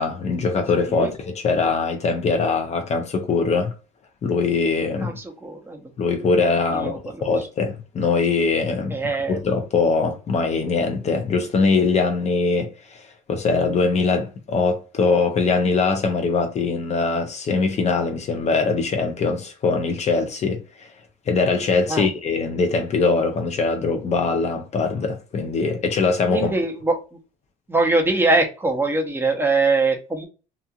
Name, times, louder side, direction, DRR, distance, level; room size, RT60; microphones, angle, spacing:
voice 1, 0.0-3.8 4.2-5.2 6.0-9.0 9.3-20.9 21.3-26.5, left 4 dB, 40° left, 0.6 m, -22 dB
voice 2, 5.0-5.9 6.7-7.3 8.9-9.4 21.9-22.1 26.3-26.9 27.7-30.3, right 3 dB, 15° right, 0.7 m, -22 dB
2.9 x 2.4 x 2.3 m
cardioid pair, 110°, 17 cm